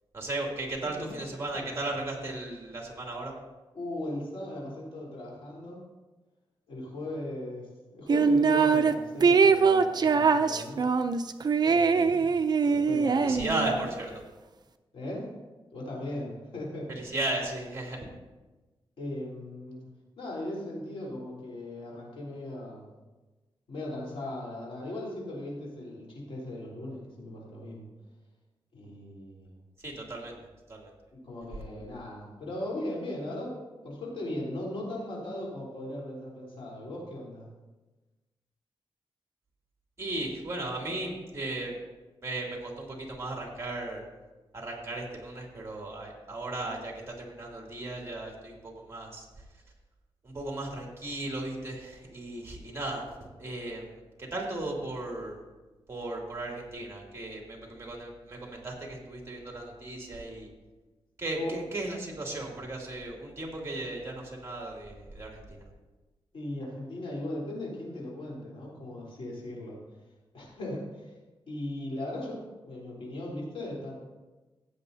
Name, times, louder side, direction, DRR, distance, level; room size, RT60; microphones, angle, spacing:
voice 1, 0.1-3.3 13.2-14.2 16.9-18.1 29.8-30.4 30.7-30.9 40.0-41.7 42.2-44.0 44.5-49.3 50.2-53.0 53.4-53.9 54.2-55.4 55.9-60.5 61.2-65.6, right 2 dB, 30° right, -1 dB, 2.6 m, -36 dB
voice 2, 3.7-5.9 6.7-10.9 11.6-12.4 12.6-13.4 14.9-15.4 15.7-16.9 19.0-19.8 20.2-22.9 23.7-27.9 28.7-29.5 31.1-37.5 61.3-61.5 66.3-69.8 70.3-71.1 71.5-74.0, left 1 dB, 75° left, -4 dB, 3.7 m, -38 dB
sound 1, 8.1-8.9 9.2-13.9, right 5 dB, 45° right, 0.5 m, -23 dB
16.0 x 8.2 x 2.7 m, 1.2 s
wide cardioid pair, 100°, 9 cm